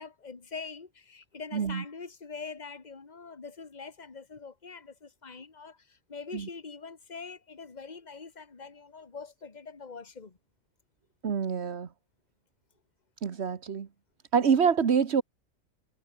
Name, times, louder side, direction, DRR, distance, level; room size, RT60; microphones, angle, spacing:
voice 1, 0.0-10.4, left 5 dB, 35° left, 1.8 m, -44 dB
voice 2, 1.5-1.8 6.3-6.5 11.2-11.9 13.2-13.9 14.3-15.2, right 6 dB, 55° right, 1.4 m, -26 dB
omnidirectional pair, 1.4 m